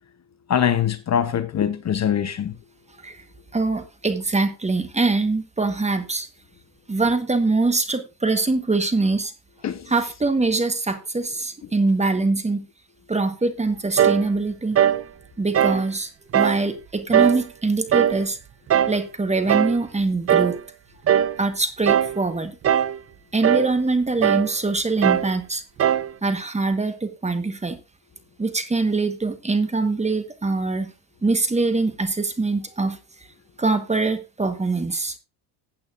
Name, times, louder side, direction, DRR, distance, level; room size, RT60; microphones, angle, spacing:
voice 1, 0.5-2.6 9.6-9.9, left 9 dB, 35° left, 0.8 m, -23 dB
voice 2, 3.5-6.3 6.9-9.3 9.9-12.7 13.1-14.8 15.4-18.4 18.9-20.5 21.4-22.6 23.3-25.6 26.2-27.8 28.4-30.9 31.2-33.0 33.6-35.1, right 3 dB, 15° right, 1.3 m, -23 dB
sound 1, 14.0-14.3 14.7-15.0 15.5-15.8 16.3-16.6 17.1-17.4 17.9-18.2 18.7-19.0 19.5-19.8 20.3-20.6 21.1-21.4 21.9-22.2 22.6-23.0 23.4-23.7 24.2-24.5 25.0-25.3 25.8-26.1, right 9 dB, 30° right, 0.5 m, -19 dB
15.0 x 8.5 x 2.5 m
supercardioid pair, 100°, 49 cm